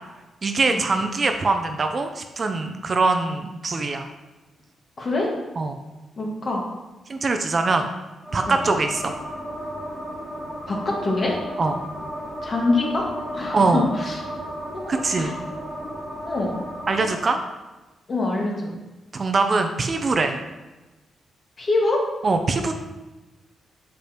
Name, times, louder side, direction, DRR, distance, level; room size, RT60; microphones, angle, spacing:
voice 1, 0.4-4.1 5.6-5.8 7.1-7.9 8.3-9.1 11.6-11.8 13.5-13.9 14.9-15.3 16.9-17.4 19.1-20.4 22.2-22.7, right 3 dB, 40° right, 6 dB, 0.5 m, -22 dB
voice 2, 5.0-5.3 6.2-6.7 8.5-8.6 10.7-11.4 12.4-13.1 13.3-14.2 14.7-15.3 16.3-16.5 18.1-18.7 21.6-22.0, left 2 dB, 40° left, -2 dB, 1.7 m, -24 dB
Adriana Lopez - Air Draft, 8.2-17.2, equal, ahead, 1.6 m, -34 dB
6.7 x 5.3 x 2.9 m, 1.1 s
cardioid pair, 85°, 0 cm